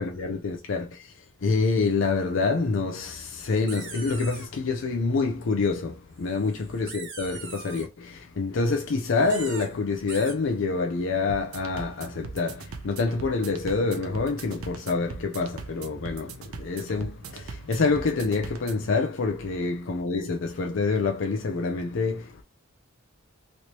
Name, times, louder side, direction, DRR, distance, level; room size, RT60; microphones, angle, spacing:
voice 1, 0.0-22.4, left 4 dB, 65° left, 0.5 m, -27 dB
sound 1, 3.5-4.5 6.3-7.9 9.2-9.7 10.1-10.3, right 5 dB, 55° right, 1.0 m, -41 dB
sound 2, 11.3-18.9, right 4 dB, 85° right, 0.6 m, -41 dB
3.1 x 2.8 x 2.9 m
head